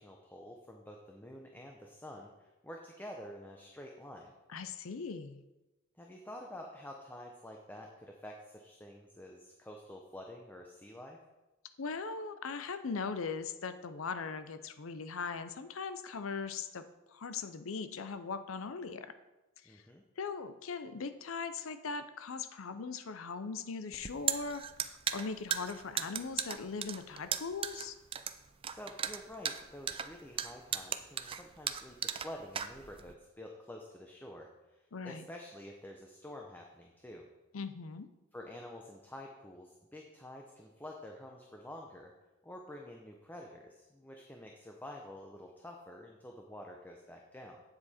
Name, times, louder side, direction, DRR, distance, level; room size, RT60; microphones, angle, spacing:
voice 1, 0.0-4.3 6.0-11.2 19.7-20.0 28.7-37.2 38.3-42.1 42.4-47.6, left 1 dB, 10° left, 1 dB, 0.7 m, -49 dB
voice 2, 4.5-5.4 11.8-16.8 17.1-19.1 19.6-19.8 20.2-28.0 34.9-35.2 37.5-38.1, left 5 dB, 80° left, 11 dB, 0.6 m, -40 dB
sound 1, 23.9-33.1, right 8 dB, 25° right, 0.4 m, -37 dB
8.8 x 7.6 x 4.2 m, 1.1 s
head